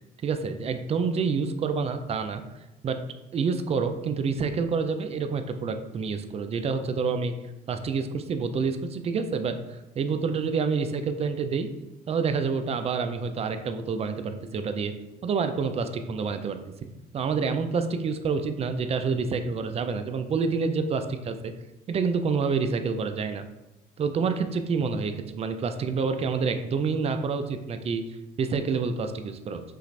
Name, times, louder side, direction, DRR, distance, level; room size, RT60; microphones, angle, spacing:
voice 1, 0.2-2.4 2.8-3.0 3.3-7.3 7.7-11.7 12.1-14.9 15.2-16.6 17.1-21.5 21.9-23.4 24.0-28.0 28.4-29.6, right 5 dB, 35° right, 8 dB, 0.4 m, -28 dB
5.7 x 2.5 x 3.2 m, 0.98 s
cardioid pair, 110°, 17 cm